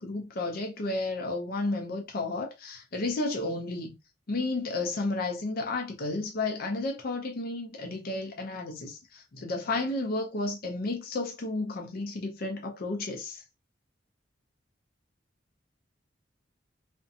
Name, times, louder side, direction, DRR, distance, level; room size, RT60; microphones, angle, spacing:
voice 1, 0.0-4.0 4.3-13.4, left 2 dB, 55° left, 0.5 m, -32 dB
2.5 x 2.1 x 2.6 m
head